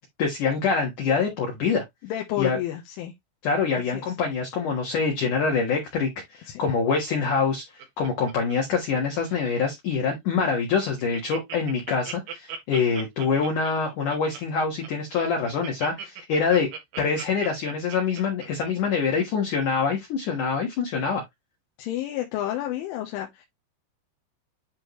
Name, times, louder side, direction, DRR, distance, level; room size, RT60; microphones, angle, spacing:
voice 1, 0.2-1.8 2.4-2.6 3.4-16.7 17.0-21.2, left 5 dB, 60° left, 2.2 m, -25 dB
voice 2, 2.0-3.1 3.9-4.0 6.5-6.7 21.8-23.5, left 13 dB, 85° left, 3.5 m, -30 dB
Laughter, 7.2-9.0 9.2-9.6 10.1-10.2 10.4-10.5 10.8-19.2 19.7-19.8, right 7 dB, 80° right, 4.3 m, -39 dB
10.5 x 3.7 x 3.1 m
omnidirectional pair, 5.5 m